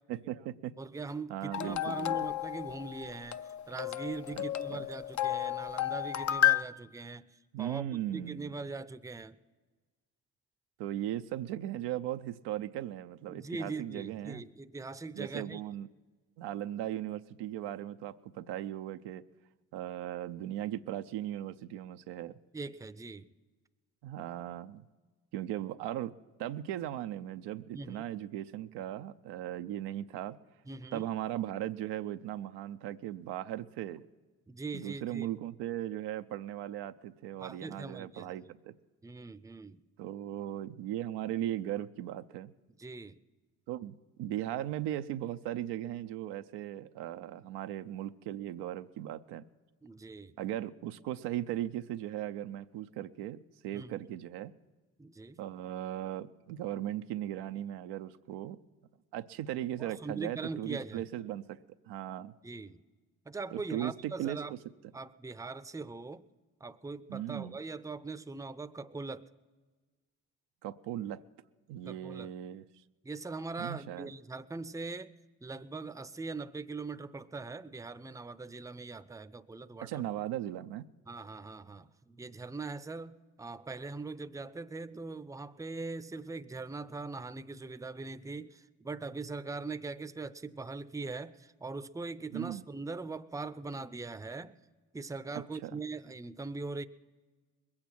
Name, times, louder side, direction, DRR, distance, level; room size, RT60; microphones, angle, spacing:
voice 1, 0.1-0.8 1.3-2.3 4.4-4.8 7.5-8.5 10.8-14.4 15.1-15.9 16.4-19.2 19.7-22.4 24.0-24.8 25.3-26.1 26.4-30.4 30.9-34.1 34.7-38.7 40.0-42.5 43.7-49.4 50.4-54.5 55.4-58.6 59.1-62.3 63.5-64.6 67.1-67.6 70.6-71.2 71.7-72.7 73.6-74.1 79.8-80.9 92.3-92.6 95.3-95.8, right 12 dB, 80° right, 9 dB, 0.6 m, -38 dB
voice 2, 0.8-3.4 3.7-7.3 7.6-7.9 8.1-9.4 13.3-15.6 22.5-23.3 27.7-28.1 30.7-31.1 34.5-35.3 37.4-38.3 39.0-39.8 42.8-43.2 49.8-50.3 53.7-53.9 55.0-55.4 59.8-61.0 62.4-62.8 63.3-64.5 64.9-66.2 66.6-69.3 71.9-72.3 73.0-75.1 75.4-80.0 81.1-94.6 94.9-96.8, right 3 dB, 10° right, 13 dB, 0.6 m, -41 dB
sound 1, 1.5-6.6, left 13 dB, 45° left, 0.6 m, -32 dB
21.5 x 8.7 x 6.1 m, 1.3 s
supercardioid pair, 55°, 40 cm